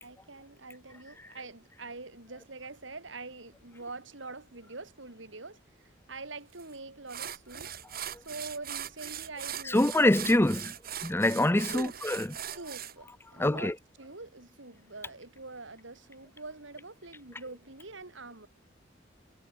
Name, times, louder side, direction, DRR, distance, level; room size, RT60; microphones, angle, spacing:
voice 1, 0.0-7.7 8.2-10.1 11.7-12.0 12.5-13.1 13.3-18.5, right 3 dB, 85° right, 3.8 m, -44 dB
sound 1, 6.6-6.7 7.1-12.9, right 10 dB, 55° right, 6.6 m, -40 dB
voice 2, 9.7-10.7 11.0-12.2 13.4-13.7, left 1 dB, 15° left, 0.7 m, -24 dB
head